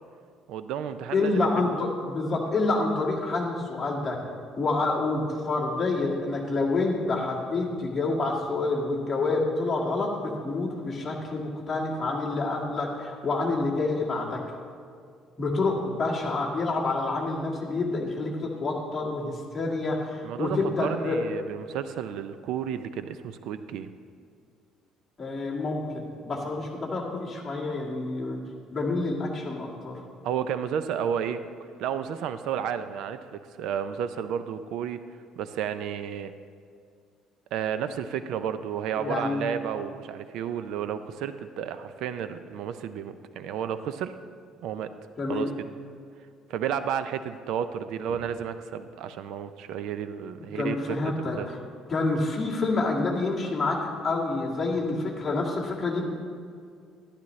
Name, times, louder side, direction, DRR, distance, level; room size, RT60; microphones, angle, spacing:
voice 1, 0.5-1.9 20.2-23.9 30.2-31.4 31.8-35.0 35.4-36.3 37.5-44.1 44.6-44.9 45.3-45.7 46.5-51.5, right 8 dB, 70° right, 11 dB, 0.4 m, -32 dB
voice 2, 1.1-4.2 4.6-14.4 15.4-21.2 25.2-28.4 28.7-30.0 39.0-39.5 45.2-45.5 50.6-51.4 51.9-56.1, left 3 dB, 20° left, -4 dB, 1.9 m, -28 dB
12.0 x 11.5 x 3.1 m, 2.3 s
cardioid pair, 155°, 0 cm